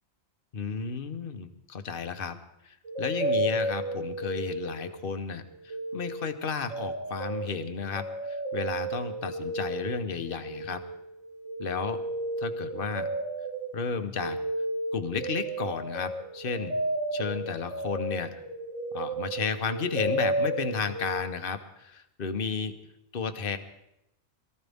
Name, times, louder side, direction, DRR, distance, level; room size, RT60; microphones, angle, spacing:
voice 1, 0.5-2.4 2.6-10.8 11.6-12.0 12.4-13.1 13.7-14.4 14.9-16.7 17.1-18.4 18.9-22.7 23.1-23.6, left 5 dB, 50° left, 9 dB, 1.2 m, -33 dB
sound 1, 2.8-5.2 5.5-21.2, right 1 dB, 85° right, 1.8 m, -33 dB
22.5 x 14.0 x 3.5 m, 0.83 s
omnidirectional pair, 1.2 m